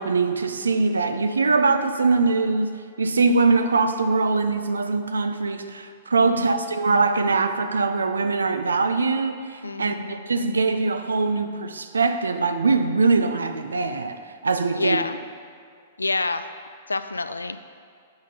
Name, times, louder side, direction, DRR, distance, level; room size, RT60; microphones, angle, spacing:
voice 1, 0.0-14.2 14.4-15.0, right 4 dB, 80° right, 8 dB, 0.4 m, -22 dB
voice 2, 9.6-10.3 14.7-15.1 16.0-16.5 16.9-17.6, left 3 dB, 85° left, 11 dB, 0.3 m, -27 dB
8.0 x 3.6 x 5.4 m, 2.2 s
figure-of-eight pair, 110°, 0 cm